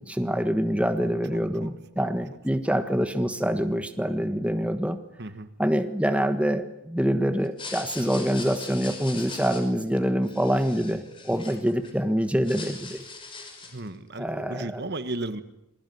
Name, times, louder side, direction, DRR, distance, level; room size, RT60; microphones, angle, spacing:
voice 1, 0.0-5.0 5.6-13.0 14.2-14.8, equal, 5° right, 8 dB, 1.4 m, -25 dB
voice 2, 0.9-1.7 5.2-5.5 13.6-15.4, right 2 dB, 50° right, 11 dB, 1.6 m, -35 dB
sound 1, 7.4-11.9 12.3-13.9, left 4 dB, 25° left, 5.7 m, -40 dB
27.5 x 22.0 x 9.5 m, 0.87 s
head